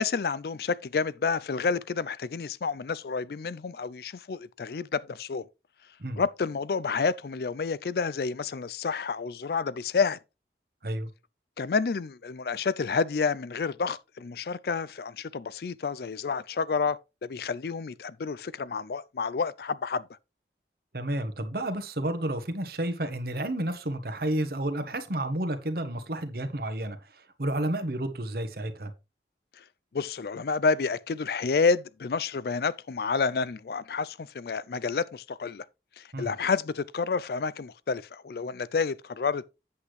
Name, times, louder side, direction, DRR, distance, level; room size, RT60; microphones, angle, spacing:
voice 1, 0.0-5.4 6.2-10.2 11.6-20.0 29.6-29.7 29.9-35.7 36.0-39.4, left 5 dB, 60° left, 0.4 m, -29 dB
voice 2, 20.9-28.9 36.1-36.3, right 1 dB, 60° right, 1.3 m, -31 dB
8.4 x 8.1 x 3.2 m
head